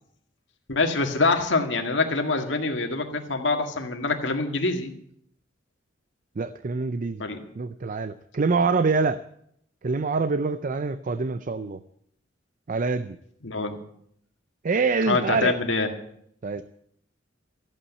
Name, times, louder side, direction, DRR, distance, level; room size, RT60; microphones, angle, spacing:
voice 1, 0.7-4.9 7.2-7.4 13.4-13.8 15.1-15.9, left 3 dB, 70° left, 4 dB, 1.9 m, -25 dB
voice 2, 6.4-7.2 7.6-9.2 9.8-11.8 12.7-13.2 14.6-15.6 16.4-16.6, right 4 dB, 45° right, 12 dB, 0.5 m, -25 dB
14.0 x 8.7 x 8.3 m, 0.71 s
head